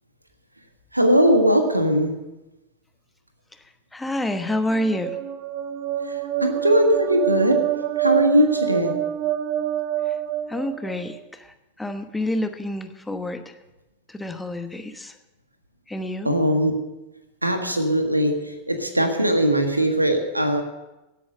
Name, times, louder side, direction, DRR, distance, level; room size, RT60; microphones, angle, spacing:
voice 1, 0.9-2.1 6.4-7.6 8.0-8.9 16.2-16.7 17.4-18.3 18.7-20.6, equal, 85° right, 6 dB, 1.5 m, -19 dB
voice 2, 3.9-5.2 10.5-13.5 14.1-15.2 15.9-16.4, left 1 dB, 5° left, 8 dB, 1.1 m, -28 dB
sound 1, 4.5-11.2, right 12 dB, 40° right, 0.8 m, -27 dB
17.0 x 8.5 x 6.3 m, 1.0 s
figure-of-eight pair, 90°, 0 cm